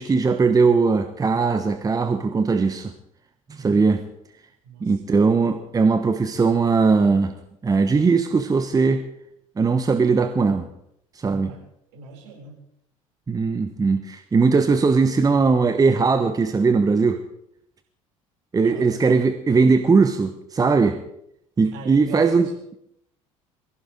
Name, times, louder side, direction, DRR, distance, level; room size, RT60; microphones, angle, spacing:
voice 1, 0.0-2.9 3.5-4.0 4.8-7.3 7.6-9.0 9.6-10.7 11.1-11.5 13.3-17.2 18.5-21.0 21.6-22.5, right 4 dB, 20° right, 8 dB, 1.2 m, -19 dB
voice 2, 4.6-5.0 11.4-11.6 11.9-12.6 18.6-18.9 21.7-22.5, right 3 dB, 60° right, -1 dB, 6.4 m, -39 dB
23.0 x 15.5 x 3.7 m, 0.76 s
figure-of-eight pair, 60°, 18 cm